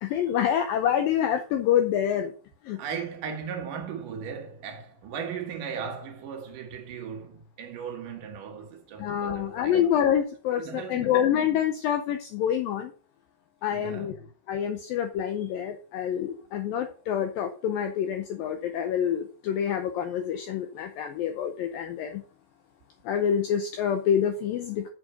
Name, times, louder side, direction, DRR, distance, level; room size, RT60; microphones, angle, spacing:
voice 1, 0.0-2.3 2.6-2.8 9.0-12.9 13.6-14.1 14.5-22.2 23.0-24.9, left 9 dB, 80° left, 2.1 m, -27 dB
voice 2, 2.8-9.8 10.5-11.2 13.7-14.2, right 6 dB, 65° right, 2.5 m, -37 dB
7.6 x 6.3 x 5.4 m
omnidirectional pair, 4.9 m